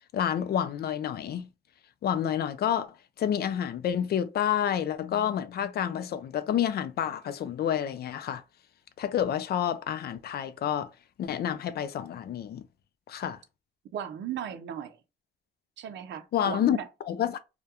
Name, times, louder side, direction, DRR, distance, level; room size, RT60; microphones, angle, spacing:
voice 1, 0.1-1.5 2.0-8.4 9.0-10.9 11.2-12.6 13.1-13.4 16.3-16.8 17.1-17.4, left 9 dB, 55° left, 0.4 m, -29 dB
voice 2, 13.9-15.0 15.8-16.9, right 9 dB, 65° right, 0.5 m, -36 dB
2.2 x 2.1 x 2.8 m
cardioid pair, 90°, 20 cm